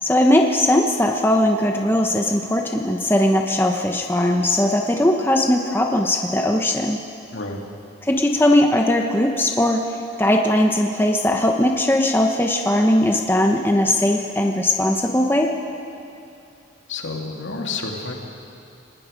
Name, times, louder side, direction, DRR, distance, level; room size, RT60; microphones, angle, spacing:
voice 1, 0.0-7.0 8.0-9.8 10.2-15.5, left 1 dB, 10° left, 2 dB, 0.9 m, -19 dB
voice 2, 7.3-7.6 16.9-18.1, left 3 dB, 70° left, 1 dB, 2.5 m, -29 dB
28.5 x 19.5 x 5.2 m, 2.6 s
head